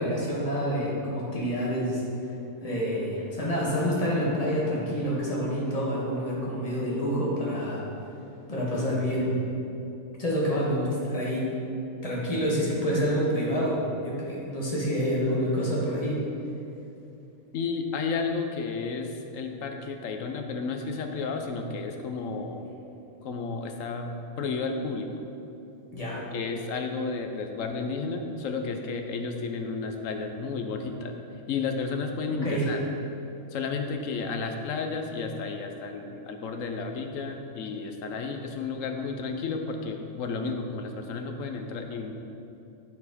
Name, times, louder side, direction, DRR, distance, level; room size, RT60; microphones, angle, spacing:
voice 1, 0.0-2.0 2.6-7.8 8.5-9.4 10.2-11.5 12.0-16.2 25.9-26.2 32.4-32.7, equal, 25° left, -5 dB, 1.6 m, -27 dB
voice 2, 17.5-22.6 23.2-25.1 26.1-31.2 31.5-32.8 33.5-42.1, left 4 dB, 65° left, 4 dB, 1.1 m, -32 dB
12.0 x 4.5 x 4.1 m, 2.9 s
omnidirectional pair, 1.5 m